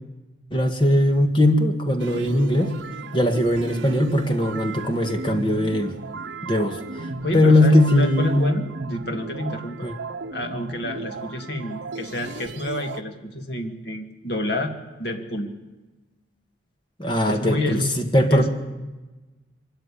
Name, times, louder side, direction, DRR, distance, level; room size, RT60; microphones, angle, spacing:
voice 1, 0.5-2.7 3.1-5.9 6.4-7.1 7.3-8.5 9.8-9.9 17.0-18.5, left 1 dB, 25° left, 5 dB, 1.6 m, -20 dB
sound 1, 2.0-13.0, right 3 dB, 75° right, 0.9 m, -35 dB
voice 2, 7.2-9.9 10.3-14.7 15.0-15.5 17.3-17.9 18.3-18.5, left 1 dB, 55° left, 4 dB, 2.2 m, -29 dB
23.0 x 13.5 x 10.0 m, 1.2 s
head